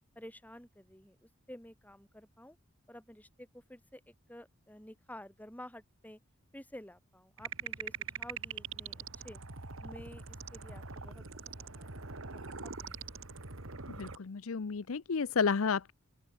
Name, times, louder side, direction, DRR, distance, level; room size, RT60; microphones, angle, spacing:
voice 1, 0.2-2.6 2.9-6.2 6.5-9.4 9.8-11.3 11.6-13.0, left 1 dB, 10° left, 7.0 m, -51 dB
sound 1, 7.4-14.2, right 5 dB, 70° right, 2.4 m, -43 dB
voice 2, 14.0-15.9, left 5 dB, 75° left, 0.6 m, -31 dB
open air
head